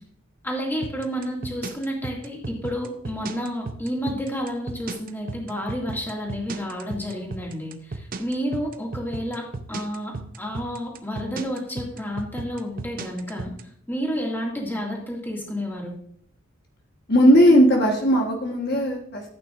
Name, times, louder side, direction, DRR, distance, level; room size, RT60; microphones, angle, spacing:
voice 1, 0.4-13.5 13.9-15.9, equal, 10° left, -2 dB, 2.2 m, -30 dB
sound 1, 0.8-13.6, right 3 dB, 45° right, 0.7 m, -34 dB
voice 2, 17.1-19.3, equal, 50° left, 1 dB, 1.4 m, -17 dB
14.0 x 8.8 x 2.6 m, 0.62 s
head